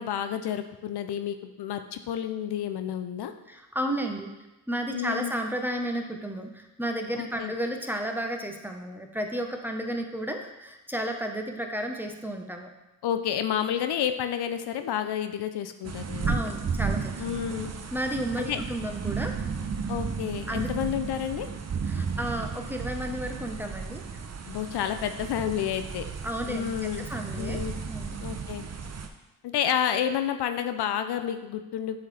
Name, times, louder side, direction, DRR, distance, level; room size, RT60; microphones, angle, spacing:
voice 1, 0.0-3.3 4.9-5.3 7.1-7.5 13.0-16.3 17.2-17.7 18.4-18.6 19.9-21.5 24.5-26.1 26.5-27.1 27.4-27.8 28.2-28.6 29.4-32.0, left 9 dB, 70° left, 8 dB, 0.6 m, -30 dB
voice 2, 3.5-4.3 4.7-12.7 16.3-17.2 17.9-19.3 20.5-20.7 21.9-24.0 26.2-27.6 27.9-28.1, right 1 dB, 5° right, 3 dB, 0.9 m, -32 dB
sound 1, 15.8-29.1, right 5 dB, 40° right, 0.7 m, -34 dB
7.8 x 4.1 x 3.3 m, 1.0 s
supercardioid pair, 45°, 41 cm